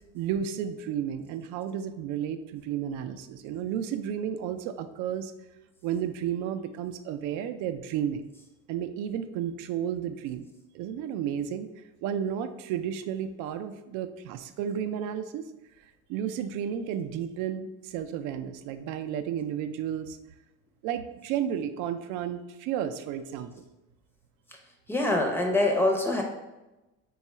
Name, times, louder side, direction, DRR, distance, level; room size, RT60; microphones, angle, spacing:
voice 1, 0.1-5.3 5.8-8.2 8.7-10.5 10.7-11.7 12.0-15.5 16.1-20.2 20.8-23.6, right 9 dB, 70° right, 9 dB, 0.4 m, -32 dB
voice 2, 24.9-26.2, left 2 dB, 5° left, 1 dB, 0.6 m, -24 dB
3.6 x 2.3 x 4.1 m, 1.0 s
cardioid pair, 120°, 31 cm